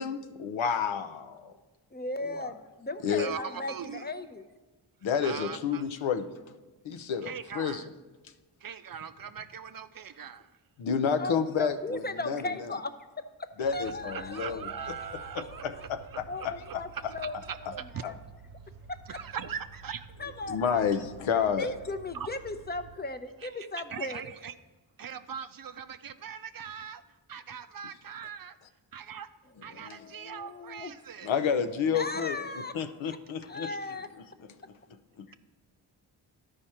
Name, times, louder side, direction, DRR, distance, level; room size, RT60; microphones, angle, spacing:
voice 1, 0.0-1.5 2.2-2.5 3.0-3.3 5.0-6.3 6.8-7.8 10.8-12.5 13.6-14.6 15.3-16.8 18.0-18.1 20.5-21.7 29.7-30.0 31.2-32.4 32.7-33.7 35.2-35.3, left 7 dB, 75° left, 9 dB, 0.7 m, -30 dB
voice 2, 1.9-4.4 11.2-15.8 16.3-17.4 17.6-18.1 18.9-19.2 20.2-20.9 21.3-24.2 29.7-30.9 31.9-32.7 33.1-33.2 33.5-34.1, left 2 dB, 20° left, 9 dB, 0.7 m, -38 dB
voice 3, 3.1-4.1 5.2-5.8 7.2-7.9 8.6-10.5 13.8-17.0 17.5-18.0 19.1-20.1 22.1-22.3 23.4-24.5 25.0-27.0 27.3-28.6 28.9-29.3 29.6-31.3 33.7-33.8, right 7 dB, 50° right, 11 dB, 0.5 m, -41 dB
sound 1, 13.6-23.0, right 4 dB, 80° right, 0.8 m, -51 dB
12.0 x 4.9 x 4.3 m, 1.2 s
cardioid pair, 40°, 47 cm